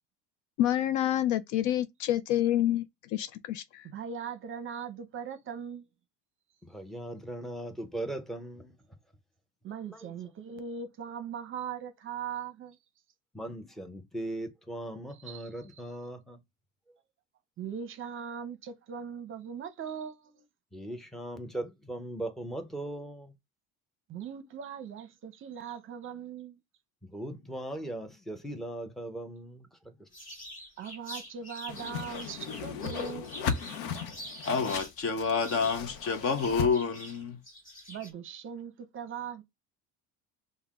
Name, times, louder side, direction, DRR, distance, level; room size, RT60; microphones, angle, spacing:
voice 1, 0.6-2.9 3.1-3.9, left 12 dB, 60° left, 0.5 m, -27 dB
voice 2, 3.8-5.9 9.6-12.8 15.2-15.5 17.6-20.4 24.1-26.6 30.8-33.3 37.9-39.4, right 7 dB, 35° right, 0.7 m, -40 dB
voice 3, 6.6-8.8 9.9-10.1 13.3-16.4 20.7-23.3 27.1-30.1, right 1 dB, ahead, 0.7 m, -39 dB
sound 1, 30.1-34.9 35.2-38.1, equal, 20° left, 1.7 m, -45 dB
Whoosh swoosh swish, 31.7-36.7, left 6 dB, 90° left, 0.8 m, -36 dB
voice 4, 34.4-37.4, left 5 dB, 40° left, 0.8 m, -28 dB
5.5 x 2.2 x 3.6 m
cardioid pair, 130°, 35 cm